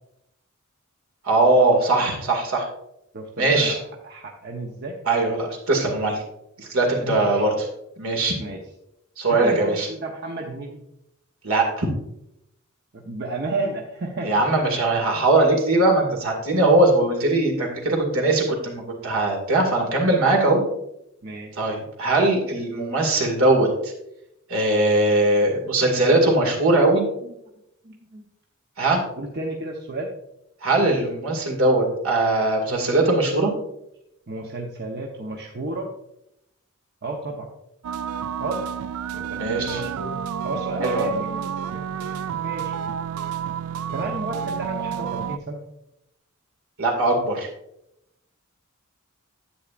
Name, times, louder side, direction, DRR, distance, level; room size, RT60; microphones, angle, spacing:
voice 1, 1.2-2.7 3.4-3.8 5.1-6.2 6.6-7.7 8.0-8.3 9.2-9.9 11.4-11.9 14.2-20.6 21.6-23.9 24.5-27.1 28.8-29.0 30.6-33.5 39.4-39.8 40.8-41.0 46.8-47.5, right 2 dB, 75° right, 1 dB, 2.2 m, -20 dB
voice 2, 3.1-5.0 7.0-7.4 8.4-8.6 9.3-10.8 12.9-14.3 21.2-21.6 27.2-27.3 27.8-28.2 29.2-30.1 34.3-35.9 37.0-37.5 38.4-38.6 39.1-40.2 40.4-42.8 43.9-45.7, right 2 dB, 50° right, 0 dB, 0.9 m, -32 dB
sound 1, 37.8-45.4, right 8 dB, 90° right, 0.4 m, -30 dB
10.0 x 8.5 x 2.5 m, 0.81 s
head